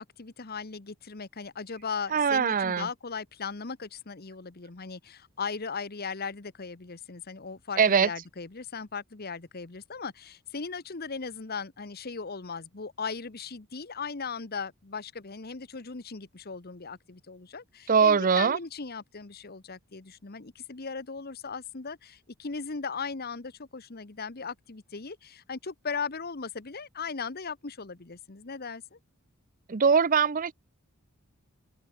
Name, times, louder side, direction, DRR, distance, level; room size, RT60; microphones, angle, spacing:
voice 1, 0.0-29.0, left 5 dB, 45° left, 1.1 m, -38 dB
voice 2, 2.1-2.9 7.8-8.1 17.9-18.6 29.7-30.5, right 6 dB, 40° right, 0.5 m, -22 dB
open air
head